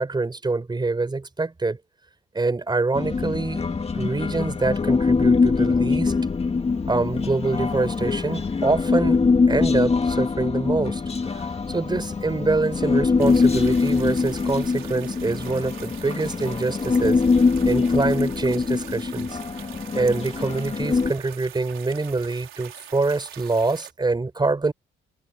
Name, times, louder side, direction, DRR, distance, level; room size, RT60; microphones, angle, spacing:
voice 1, 0.0-1.8 2.3-3.7 3.9-6.1 6.9-9.2 9.5-11.0 11.3-17.2 17.6-19.4 19.9-24.7, right 3 dB, 20° right, 4.8 m, -25 dB
Human voice, 2.9-21.1, left 4 dB, 30° left, 2.1 m, -23 dB
sound 1, 13.2-23.9, right 13 dB, 85° right, 4.3 m, -43 dB
cardioid pair, 90°, 20 cm